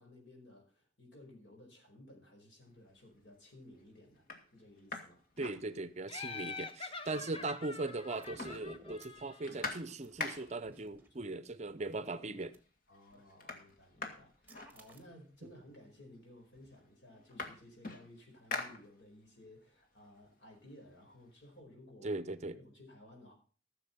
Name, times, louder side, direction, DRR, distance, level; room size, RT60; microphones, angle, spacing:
voice 1, 0.0-4.3 4.5-5.2 6.3-6.5 7.1-7.2 10.6-11.4 12.9-22.2 22.5-23.3, left 1 dB, 65° left, 4.8 m, -57 dB
sound 1, 2.8-3.2 3.7-3.8 4.2-6.2 6.6-6.7 6.9-7.8 8.0-10.8 11.7-11.8 12.2-12.7 12.9-15.3 16.1-16.2 16.5-19.4 19.8-21.5, left 3 dB, 50° left, 2.0 m, -45 dB
voice 2, 5.4-12.6 15.4-15.5 22.0-22.6, right 2 dB, 35° right, 0.6 m, -39 dB
Laughter, 6.1-9.7, left 4 dB, 30° left, 0.8 m, -46 dB
sound 2, 8.2-9.3 10.0-12.0 12.5-12.6 13.1-13.3 13.7-15.5, left 1 dB, 10° right, 1.5 m, -56 dB
14.5 x 7.0 x 5.6 m
head